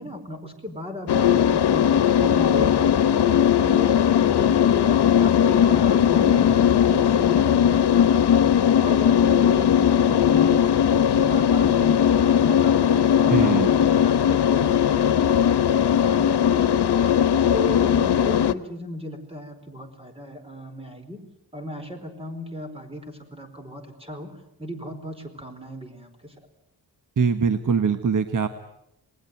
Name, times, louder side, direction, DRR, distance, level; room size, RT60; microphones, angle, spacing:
voice 1, 0.0-1.9 2.2-3.4 3.7-4.9 5.2-15.1 15.9-16.8 17.3-21.2 21.5-24.3 24.6-26.3, left 1 dB, 15° right, 7 dB, 4.5 m, -36 dB
sound 1, 1.1-18.5, left 9 dB, 85° left, 1.1 m, -19 dB
voice 2, 13.3-13.7 27.2-28.5, right 6 dB, 50° right, 8 dB, 1.5 m, -22 dB
28.0 x 20.5 x 9.3 m, 0.82 s
wide cardioid pair, 145°, 39 cm